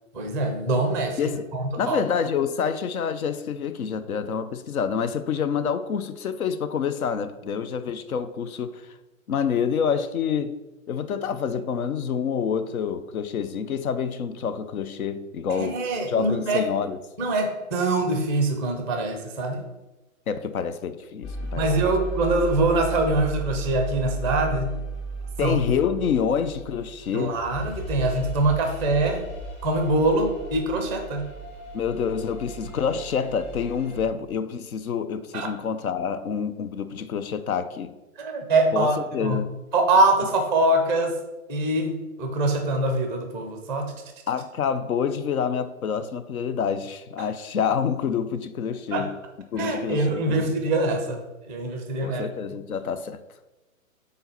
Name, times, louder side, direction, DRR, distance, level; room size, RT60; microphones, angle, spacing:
voice 1, 0.1-1.2 1.5-2.0 15.5-16.6 17.2-19.7 21.5-24.7 25.4-25.6 27.1-29.3 29.6-31.3 35.3-35.5 38.2-39.4 39.7-41.2 41.5-43.9 47.2-47.3 48.9-49.1 49.5-52.3, right 2 dB, 5° left, 0.4 m, -24 dB
voice 2, 1.8-8.8 9.3-10.6 10.9-15.8 16.1-17.0 20.3-21.9 25.4-27.4 31.7-37.9 38.7-39.5 44.3-49.1 49.5-50.5 52.0-53.2, left 7 dB, 80° left, 0.7 m, -27 dB
sound 1, 21.2-34.0, right 3 dB, 55° left, 2.1 m, -35 dB
5.6 x 4.0 x 5.7 m
hypercardioid pair, 130°, 42 cm